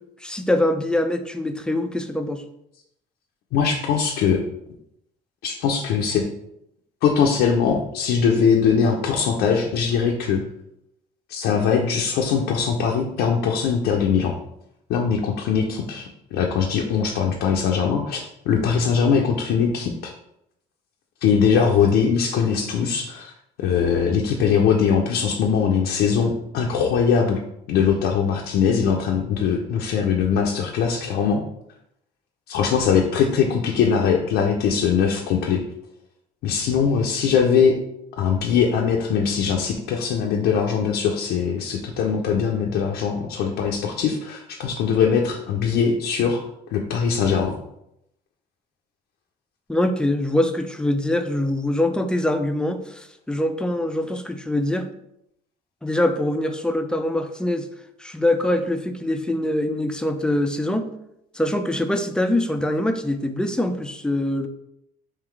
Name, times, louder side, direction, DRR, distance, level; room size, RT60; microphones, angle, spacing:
voice 1, 0.2-2.4 49.7-54.9 55.8-57.7 58.0-60.9 61.3-64.5, left 1 dB, 5° left, 7 dB, 0.4 m, -23 dB
voice 2, 3.5-4.4 5.4-6.2 7.0-10.4 11.3-14.3 14.9-20.1 21.2-23.3 23.6-27.4 27.7-31.4 32.5-35.6 36.4-37.7 38.2-46.4 46.7-47.6, left 6 dB, 85° left, 0 dB, 0.6 m, -21 dB
3.8 x 2.9 x 4.6 m, 0.80 s
cardioid pair, 110°, 17 cm